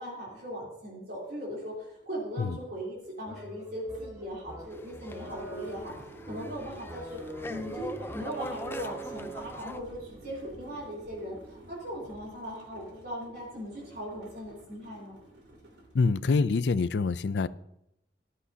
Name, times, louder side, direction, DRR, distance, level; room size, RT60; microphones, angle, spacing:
voice 1, 0.0-15.1, equal, 60° right, -4 dB, 3.4 m, -39 dB
sound 1, 1.3-1.4 1.7-16.4, right 1 dB, 85° right, 2.8 m, -53 dB
sound 2, 3.3-9.7, right 2 dB, 15° right, 1.1 m, -43 dB
sound 3, 4.7-9.8, left 2 dB, 15° left, 0.5 m, -43 dB
voice 2, 15.9-17.5, left 4 dB, 70° left, 16 dB, 0.4 m, -25 dB
13.5 x 11.5 x 2.8 m, 0.81 s
head